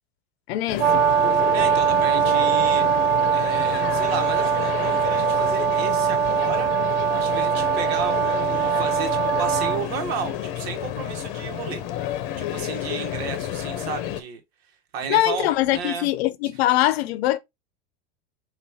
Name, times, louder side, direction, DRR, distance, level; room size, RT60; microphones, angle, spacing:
voice 1, 0.5-1.1 15.1-17.4, left 14 dB, 90° left, 0.6 m, -22 dB
sound 1, 0.7-14.2, left 11 dB, 55° left, 0.7 m, -30 dB
Brass instrument, 0.8-9.8, right 8 dB, 40° right, 0.7 m, -22 dB
voice 2, 1.5-2.9 3.3-6.7 7.1-11.8 12.4-14.4 14.9-16.1, right 6 dB, 85° right, 1.1 m, -33 dB
5.4 x 2.5 x 2.8 m
supercardioid pair, 165°, 30 cm